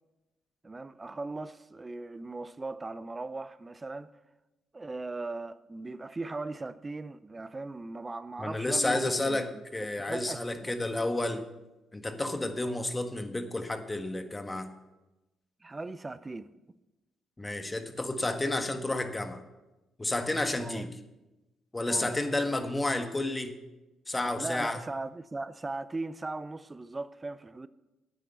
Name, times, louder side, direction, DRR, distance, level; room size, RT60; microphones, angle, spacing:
voice 1, 0.6-4.1 4.7-9.6 10.0-10.7 12.6-12.9 15.6-16.8 20.6-20.9 21.8-22.2 24.4-27.7, right 3 dB, 25° right, 0.6 m, -39 dB
voice 2, 8.4-11.4 11.9-14.7 17.4-19.4 20.0-20.9 21.7-23.5 24.1-24.8, left 2 dB, 20° left, 1.5 m, -31 dB
10.5 x 9.1 x 6.8 m
hypercardioid pair, 55°, 0 cm